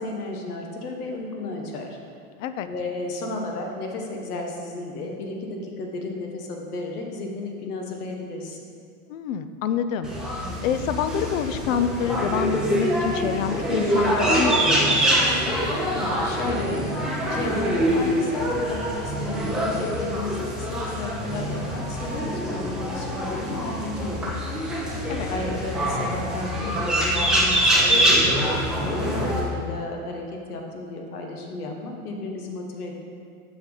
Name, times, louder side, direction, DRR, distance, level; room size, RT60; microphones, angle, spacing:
voice 1, 0.0-2.0 2.7-8.6 15.9-16.9 17.3-24.4 25.3-32.9, left 2 dB, 80° left, 2 dB, 1.3 m, -33 dB
voice 2, 9.1-10.1 10.6-15.2 15.4-15.5 25.1-25.3, left 8 dB, 60° left, 10 dB, 0.5 m, -27 dB
sound 1, 10.0-29.4, equal, ahead, 0.5 m, -24 dB
6.2 x 5.8 x 3.8 m, 2.3 s
supercardioid pair, 150°, 44 cm